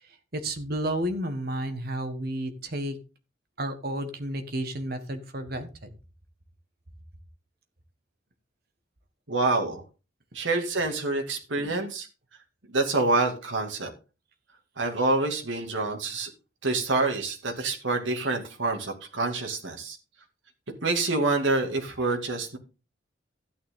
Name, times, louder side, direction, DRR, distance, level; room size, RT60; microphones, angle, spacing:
voice 1, 0.3-3.0 3.6-5.9 11.6-11.8, right 1 dB, 55° right, 7 dB, 1.6 m, -32 dB
voice 2, 9.3-9.8 10.3-12.1 12.7-13.9 14.8-16.3 16.6-20.0 20.8-22.6, right 3 dB, 80° right, 3 dB, 2.3 m, -27 dB
13.0 x 9.2 x 3.7 m, 0.31 s
head